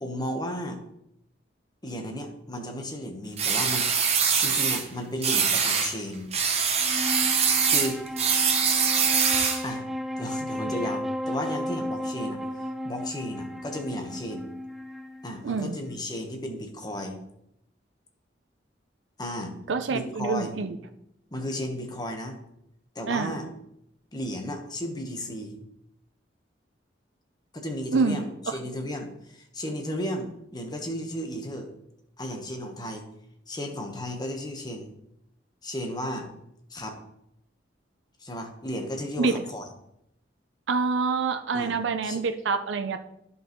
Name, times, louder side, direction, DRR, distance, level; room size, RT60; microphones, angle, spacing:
voice 1, 0.0-0.8 1.8-3.9 4.4-6.3 7.6-8.0 9.6-9.9 10.2-14.5 15.2-17.2 19.2-19.5 19.9-20.6 21.3-22.4 22.9-23.5 24.1-25.6 27.5-31.7 32.2-33.1 33.5-34.9 35.6-36.3 36.7-37.0 38.2-39.7 41.5-41.8 42.0-42.2, left 1 dB, 25° left, 3 dB, 1.1 m, -34 dB
sound 1, 3.4-4.8 5.2-5.9 6.3-9.7, right 6 dB, 35° right, 0.9 m, -23 dB
Wind instrument woodwind instrument, 6.7-16.2, left 1 dB, ahead, 0.4 m, -34 dB
voice 2, 15.4-15.8 19.7-20.8 23.1-23.4 27.9-28.2 39.2-39.4 40.7-43.0, right 4 dB, 80° right, 8 dB, 0.5 m, -26 dB
11.0 x 5.4 x 3.1 m, 0.79 s
head